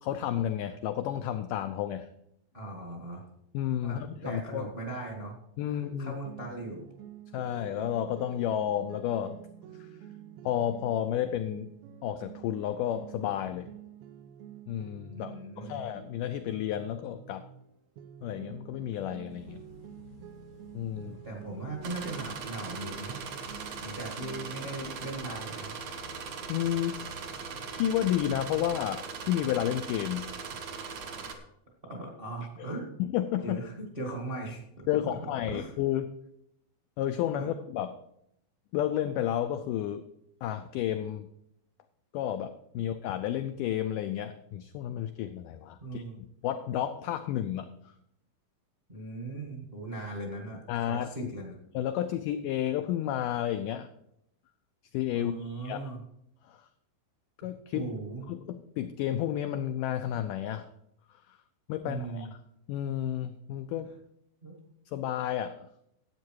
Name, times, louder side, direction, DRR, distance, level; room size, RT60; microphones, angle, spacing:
voice 1, 0.0-2.1 3.5-4.7 5.6-6.2 7.3-9.4 9.8-9.9 10.4-11.7 12.0-13.7 14.7-17.5 18.2-19.6 20.8-21.2 26.5-27.0 27.7-30.3 33.0-33.6 34.9-36.1 37.0-37.9 38.7-40.1 40.4-41.3 42.1-46.0 46.4-47.9 50.7-51.1 51.7-53.9 54.9-55.8 56.4-56.7 57.4-57.9 58.3-60.7 61.3-61.4 61.7-62.3 62.7-63.9 64.9-65.7, left 11 dB, 85° left, 8 dB, 1.9 m, -31 dB
voice 2, 2.5-3.3 3.8-5.4 5.7-6.9 15.1-15.8 21.0-23.2 23.8-25.8 31.9-32.9 33.4-35.7 37.4-37.5 42.7-42.8 45.8-46.2 48.9-51.5 55.1-56.0 57.7-58.2 61.8-62.3 64.4-64.5, right 2 dB, 30° right, 0 dB, 1.0 m, -39 dB
sound 1, 5.8-17.6 18.0-24.5, right 10 dB, 90° right, 2.7 m, -49 dB
sound 2, 19.3-28.8, left 5 dB, 70° left, 1.0 m, -53 dB
sound 3, 21.8-31.3, right 5 dB, 60° right, 1.9 m, -40 dB
12.0 x 8.5 x 4.6 m, 0.77 s
omnidirectional pair, 4.3 m